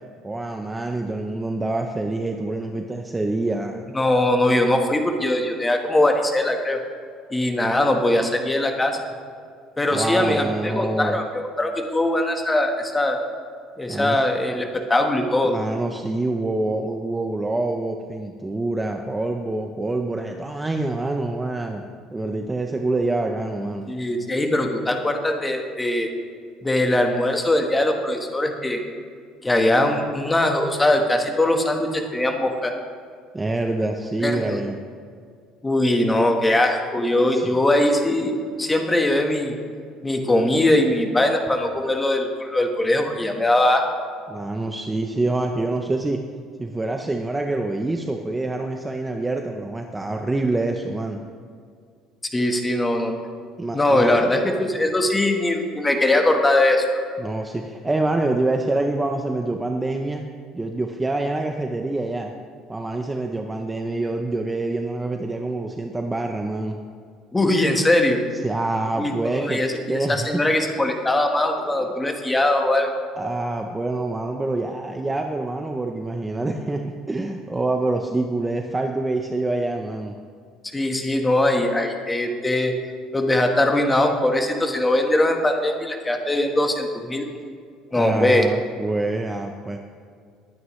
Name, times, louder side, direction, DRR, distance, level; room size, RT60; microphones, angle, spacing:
voice 1, 0.2-3.9 9.9-11.2 13.9-14.2 15.4-21.8 22.1-23.9 33.3-34.8 37.3-37.6 44.3-46.2 46.6-51.2 53.6-54.2 57.2-60.2 60.5-62.3 62.7-66.8 68.4-69.6 69.9-70.3 71.8-71.9 73.2-80.2 88.0-89.8, right 2 dB, 10° right, 4 dB, 0.6 m, -26 dB
voice 2, 3.9-6.8 7.3-9.0 9.8-13.2 13.8-15.5 23.9-26.1 26.6-28.8 29.4-32.7 34.2-34.6 35.6-39.6 40.0-43.8 52.3-53.1 53.7-56.9 67.3-68.2 69.0-72.9 80.7-82.7 83.1-87.3 87.9-88.5, left 1 dB, 10° left, 4 dB, 1.3 m, -21 dB
20.5 x 9.4 x 3.1 m, 2.2 s
cardioid pair, 150°, 0 cm